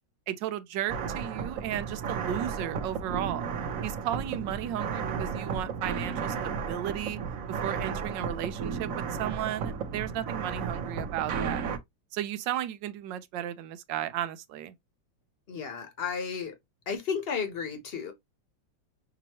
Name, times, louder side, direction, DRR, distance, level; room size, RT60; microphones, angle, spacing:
voice 1, 0.3-3.5 3.8-7.2 7.5-11.7 12.1-14.7, right 11 dB, 85° right, 1.3 m, -34 dB
sound 1, 0.9-11.8, right 6 dB, 60° right, 1.0 m, -33 dB
voice 2, 15.5-16.5 16.9-18.1, left 6 dB, 35° left, 1.2 m, -33 dB
6.1 x 2.8 x 3.0 m
omnidirectional pair, 1.9 m